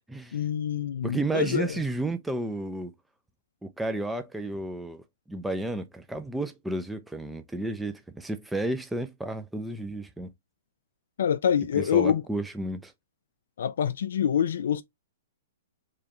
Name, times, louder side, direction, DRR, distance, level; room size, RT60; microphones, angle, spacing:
voice 1, 0.3-1.8 11.2-12.2 13.6-14.8, left 9 dB, 70° left, 0.3 m, -26 dB
voice 2, 1.0-2.9 3.6-10.3 11.7-12.9, right 2 dB, 5° right, 0.4 m, -32 dB
4.7 x 2.3 x 2.9 m
hypercardioid pair, 135°, 0 cm